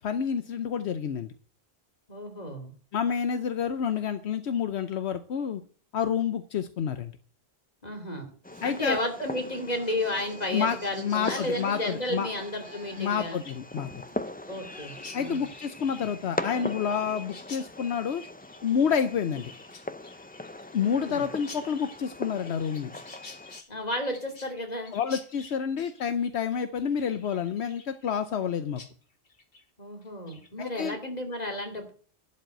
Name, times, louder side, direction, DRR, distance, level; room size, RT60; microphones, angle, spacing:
voice 1, 0.0-1.3 2.9-5.6 5.9-7.1 8.6-9.0 10.5-12.3 13.0-13.9 15.1-18.2 18.6-19.5 20.7-22.9 24.9-28.8 30.6-31.0, left 7 dB, 80° left, 10 dB, 1.1 m, -29 dB
voice 2, 2.1-2.7 7.8-8.3 8.6-13.4 14.5-15.5 20.8-21.3 23.7-25.0 29.8-31.9, left 1 dB, 40° left, 4 dB, 2.8 m, -33 dB
Fireworks, 8.4-23.6, left 2 dB, 10° left, 0.4 m, -40 dB
Laughter, 8.5-13.7 13.9-15.9, right 3 dB, 60° right, 2.2 m, -51 dB
Chirp tweet, 11.2-28.5 28.8-28.9 29.2-29.6 30.0-30.5, left 4 dB, 60° left, 1.6 m, -50 dB
12.0 x 5.4 x 8.9 m, 0.42 s
omnidirectional pair, 1.1 m